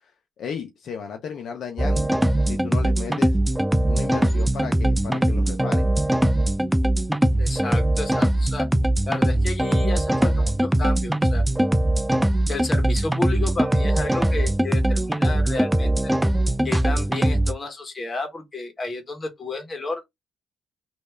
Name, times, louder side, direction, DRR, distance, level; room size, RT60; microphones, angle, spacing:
voice 1, 0.4-2.1 2.4-3.4 3.9-5.9, left 6 dB, 65° left, 0.7 m, -34 dB
sound 1, 1.8-17.5, right 1 dB, 10° right, 0.4 m, -21 dB
voice 2, 7.4-8.7 9.1-11.4 12.5-16.1 16.6-20.0, left 3 dB, 35° left, 1.5 m, -32 dB
3.1 x 2.7 x 3.3 m
cardioid pair, 90°, 0 cm